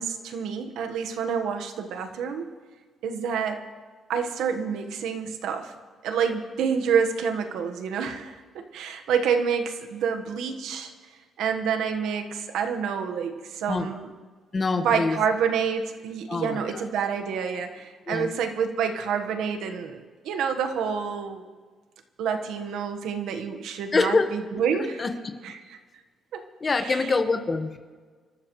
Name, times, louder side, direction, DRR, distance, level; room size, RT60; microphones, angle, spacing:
voice 1, 0.0-2.5 3.0-3.6 4.1-5.7 6.0-10.9 11.4-14.1 14.8-21.4 22.2-25.0 25.4-25.5 26.3-26.4, right 6 dB, 85° right, 6 dB, 1.4 m, -28 dB
voice 2, 14.5-15.2 16.3-16.9 18.1-18.3 23.9-24.3 24.7-25.1 26.6-27.8, left 3 dB, 35° left, 7 dB, 1.4 m, -25 dB
26.5 x 13.0 x 3.2 m, 1.5 s
cardioid pair, 90°, 0 cm